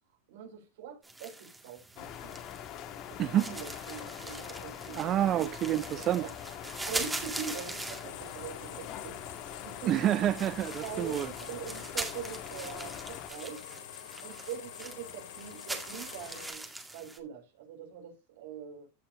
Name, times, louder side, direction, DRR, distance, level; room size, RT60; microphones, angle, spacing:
voice 1, 0.3-2.3 3.1-5.2 5.7-6.3 6.8-9.9 10.8-13.6 14.2-16.7 16.9-18.9, right 7 dB, 75° right, 4.3 m, -43 dB
sound 1, 1.0-17.2, right 2 dB, 10° right, 1.9 m, -43 dB
sound 2, 2.0-13.3, left 10 dB, 40° left, 1.6 m, -44 dB
voice 2, 3.2-3.5 4.9-6.2 9.9-11.3, right 12 dB, 30° right, 0.4 m, -28 dB
sound 3, 8.0-16.5, left 11 dB, 75° left, 2.3 m, -46 dB
15.5 x 6.1 x 2.6 m
supercardioid pair, 140°, 0 cm